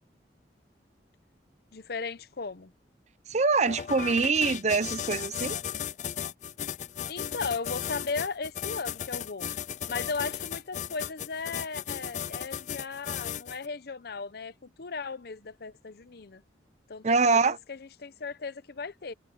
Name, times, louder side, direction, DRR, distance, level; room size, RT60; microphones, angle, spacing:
voice 1, 1.7-2.7 7.1-9.5 9.9-16.4 16.9-19.1, left 4 dB, 60° left, 0.8 m, -36 dB
voice 2, 3.3-5.6 17.0-17.6, right 4 dB, 40° right, 0.8 m, -24 dB
sound 1, 3.6-13.7, left 9 dB, 45° left, 0.4 m, -35 dB
head